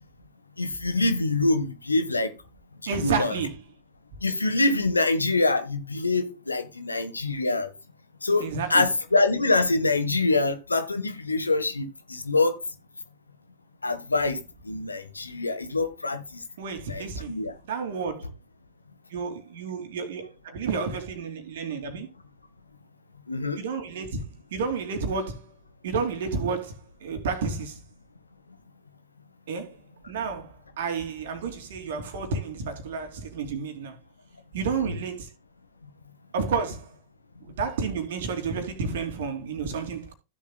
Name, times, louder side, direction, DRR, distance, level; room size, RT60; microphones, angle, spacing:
voice 1, 0.6-2.3 2.8-3.4 4.2-7.7 8.2-8.4 8.7-12.6 13.8-14.4 14.6-16.2 16.9-17.5 23.3-23.6 34.8-35.0, left 3 dB, 80° left, 1.6 m, -25 dB
voice 2, 2.9-3.5 8.4-8.9 16.6-17.3 17.7-18.3 19.1-22.1 23.6-25.5 25.8-26.7 27.0-27.8 29.5-29.8 30.1-34.0 34.5-35.3 36.3-36.9 37.5-40.1, right 5 dB, 60° right, 3.0 m, -31 dB
15.5 x 7.4 x 2.3 m
figure-of-eight pair, 90°, 0 cm